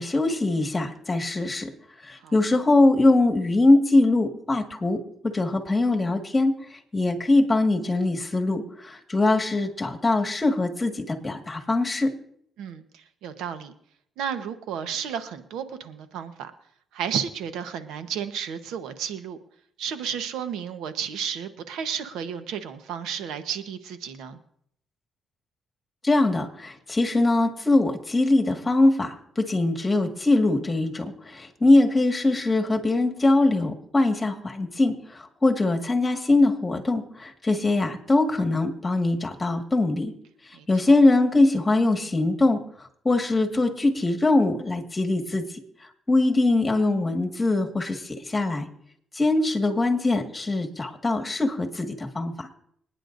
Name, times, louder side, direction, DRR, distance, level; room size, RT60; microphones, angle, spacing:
voice 1, 0.0-1.7 2.0-12.1 26.0-40.1 40.7-42.6 43.1-45.5 46.1-48.7 49.1-52.5, left 2 dB, 25° left, 3 dB, 1.8 m, -22 dB
voice 2, 12.6-13.7 14.2-16.5 16.9-19.4 19.8-24.4 40.5-41.0, right 8 dB, 90° right, 9 dB, 1.0 m, -32 dB
26.0 x 9.7 x 2.6 m, 0.67 s
cardioid pair, 90°, 0 cm